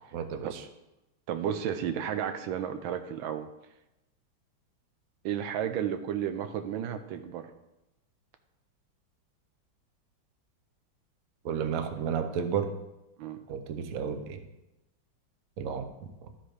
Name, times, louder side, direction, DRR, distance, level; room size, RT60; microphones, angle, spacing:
voice 1, 0.1-0.6 11.4-12.7 13.5-14.4 15.6-16.1, right 7 dB, 60° right, 8 dB, 1.0 m, -32 dB
voice 2, 1.3-3.5 5.2-7.5 13.2-13.4, right 9 dB, 85° right, 9 dB, 1.5 m, -32 dB
12.5 x 4.3 x 4.8 m, 0.94 s
omnidirectional pair, 2.1 m